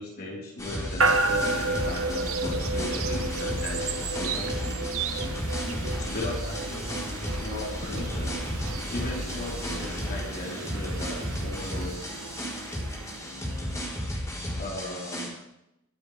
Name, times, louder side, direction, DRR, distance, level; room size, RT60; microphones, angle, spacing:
voice 1, 0.0-4.9 5.2-5.3 5.6-6.9 7.4-8.4 8.9-12.0 14.6-15.3, left 2 dB, 50° left, -4 dB, 4.4 m, -37 dB
sound 1, 0.6-15.3, equal, 15° left, 4.3 m, -33 dB
sound 2, 1.0-14.0, right 3 dB, 75° right, 1.3 m, -32 dB
23.5 x 11.5 x 3.5 m, 0.84 s
head